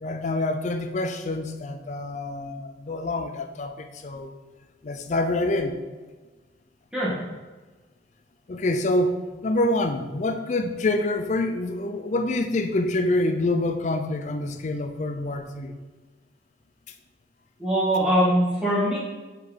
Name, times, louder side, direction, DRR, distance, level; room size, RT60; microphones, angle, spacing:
voice 1, 0.0-4.3 4.8-5.8 8.5-15.7, left 2 dB, 40° left, 6 dB, 0.4 m, -26 dB
voice 2, 17.6-19.0, equal, 5° right, -8 dB, 1.8 m, -22 dB
5.2 x 4.6 x 4.1 m, 1.3 s
head